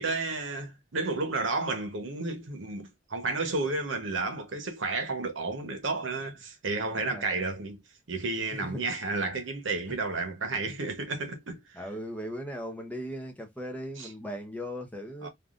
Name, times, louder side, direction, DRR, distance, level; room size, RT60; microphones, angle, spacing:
voice 1, 0.0-7.8 8.1-11.6 14.0-14.1 15.2-15.3, right 3 dB, 85° right, 0.9 m, -32 dB
voice 2, 7.0-7.4 8.6-8.8 9.9-10.0 10.7-10.8 11.7-15.3, equal, 10° left, 0.6 m, -38 dB
3.5 x 2.3 x 2.4 m
head